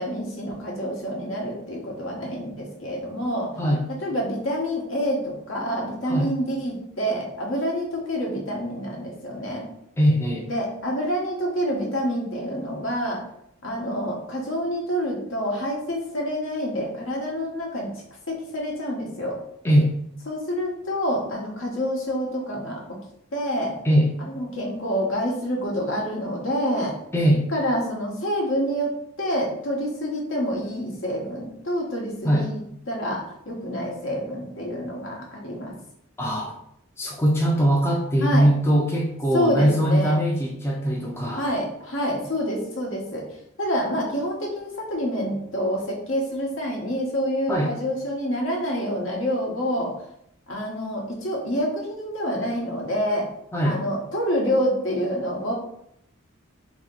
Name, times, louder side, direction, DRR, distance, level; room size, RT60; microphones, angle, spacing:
voice 1, 0.0-3.5 4.0-9.7 10.5-13.2 13.6-17.9 18.3-19.4 20.3-23.0 23.3-23.8 24.2-26.9 27.5-28.9 29.2-32.5 32.9-35.8 38.2-38.5 39.3-40.2 41.3-43.2 43.6-49.9 50.5-53.3 53.6-55.5, equal, 70° left, -1 dB, 1.0 m, -27 dB
voice 2, 10.0-10.5 19.6-19.9 23.8-24.1 27.1-27.5 32.2-32.5 36.2-36.5 37.0-41.5 47.5-47.7 53.5-53.8, equal, 10° left, -2 dB, 0.4 m, -21 dB
2.9 x 2.7 x 3.8 m, 0.73 s
head